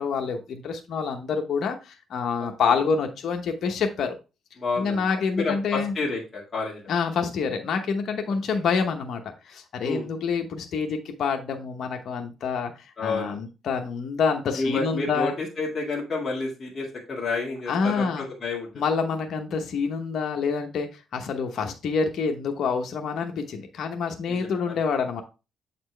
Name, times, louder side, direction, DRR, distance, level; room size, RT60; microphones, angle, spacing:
voice 1, 0.0-4.2 4.8-5.9 6.9-15.3 17.7-18.3 18.8-25.2, left 5 dB, 65° left, 4 dB, 0.9 m, -27 dB
voice 2, 2.4-2.8 4.6-5.1 5.3-6.9 8.5-8.6 9.8-10.1 13.0-13.4 14.5-18.7 24.3-24.8, left 3 dB, 35° left, -3 dB, 1.9 m, -30 dB
7.4 x 4.3 x 3.3 m, 0.30 s
cardioid pair, 90°, 0 cm